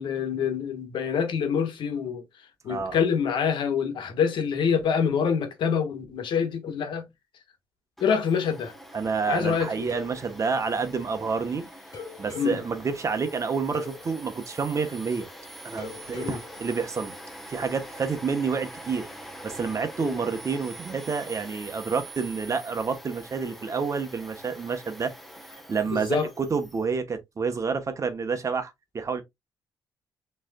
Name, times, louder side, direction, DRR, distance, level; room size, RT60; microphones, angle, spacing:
voice 1, 0.0-2.2 2.6-7.1 8.0-8.7 9.3-9.9 12.3-12.6 16.1-16.4 20.0-20.2 25.9-26.3, left 7 dB, 75° left, 1.3 m, -26 dB
voice 2, 2.7-3.0 8.9-11.7 12.2-15.3 15.6-17.1 17.5-19.1 19.4-25.1 25.7-29.2, right 5 dB, 40° right, 1.1 m, -29 dB
Domestic sounds home sounds, 8.0-26.8, right 1 dB, ahead, 1.2 m, -44 dB
sound 1, 9.9-11.5 11.9-15.3 15.8-17.7, left 5 dB, 50° left, 1.9 m, -45 dB
6.2 x 3.3 x 2.3 m
cardioid pair, 90°, 8 cm